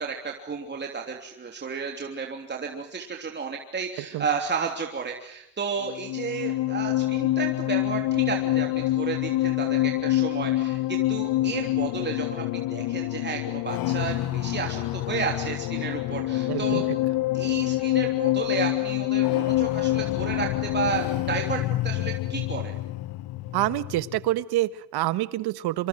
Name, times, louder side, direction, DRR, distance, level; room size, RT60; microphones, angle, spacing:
voice 1, 0.0-16.8 17.3-22.7, right 5 dB, 25° right, 2 dB, 3.2 m, -32 dB
sound 1, 5.8-24.3, left 16 dB, 60° left, 1.1 m, -26 dB
voice 2, 16.5-17.0 23.5-25.9, right 16 dB, 70° right, 15 dB, 1.4 m, -27 dB
26.0 x 25.5 x 7.8 m, 0.75 s
supercardioid pair, 100°, 40 cm